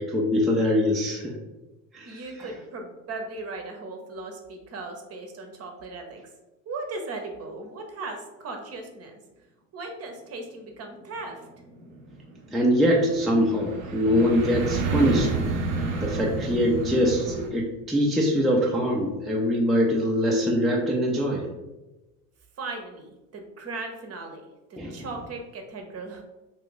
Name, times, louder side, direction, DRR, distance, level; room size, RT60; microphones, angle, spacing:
voice 1, 0.0-1.3 1.9-2.2 12.5-15.3 16.0-21.5 24.8-25.0, equal, ahead, -2 dB, 0.4 m, -23 dB
voice 2, 2.0-6.2 6.7-9.2 9.7-11.4 22.6-26.2, right 3 dB, 40° right, 3 dB, 0.7 m, -37 dB
sound 1, 11.1-17.5, right 3 dB, 90° right, 0.6 m, -30 dB
2.6 x 2.4 x 3.6 m, 1.0 s
hypercardioid pair, 80°, 39 cm